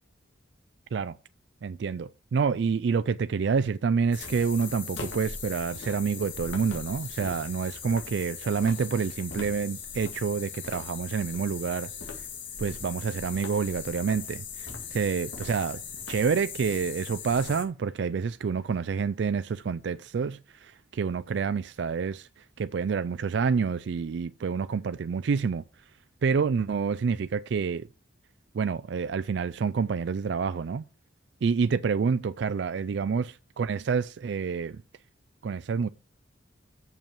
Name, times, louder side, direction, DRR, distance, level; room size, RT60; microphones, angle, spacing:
voice 1, 1.6-11.9 12.6-15.8 16.1-25.6 26.2-27.9 28.5-30.8 31.4-34.8 35.4-35.9, right 5 dB, 65° right, 0.3 m, -28 dB
sound 1, 4.1-17.6, left 6 dB, 75° left, 2.1 m, -39 dB
6.9 x 5.4 x 7.3 m
head